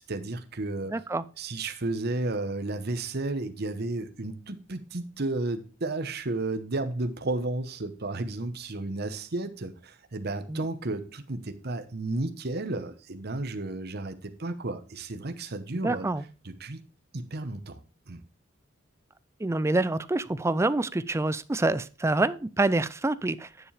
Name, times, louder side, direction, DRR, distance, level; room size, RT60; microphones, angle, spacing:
voice 1, 0.1-0.9 1.4-16.1 16.4-16.8 17.1-18.2, right 2 dB, 55° right, 1.0 m, -33 dB
voice 2, 0.9-1.2 10.5-10.6 15.8-16.2 19.4-23.5, right 2 dB, 15° right, 0.4 m, -26 dB
10.0 x 7.4 x 3.3 m
head